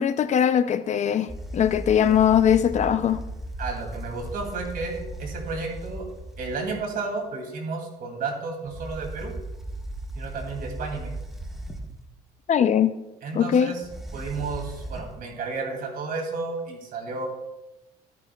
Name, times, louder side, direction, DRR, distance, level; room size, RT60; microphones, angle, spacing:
voice 1, 0.0-3.2 12.5-12.9 13.3-13.7, left 9 dB, 45° left, 12 dB, 0.5 m, -21 dB
sound 1, 1.3-6.9 8.6-12.1 13.8-15.3, right 1 dB, ahead, 1.0 m, -37 dB
voice 2, 3.6-6.1 6.4-9.4 10.1-11.1 13.2-13.8 14.1-17.3, right 4 dB, 60° right, 3 dB, 2.6 m, -32 dB
13.5 x 9.9 x 2.3 m, 1.0 s
cardioid pair, 110°, 17 cm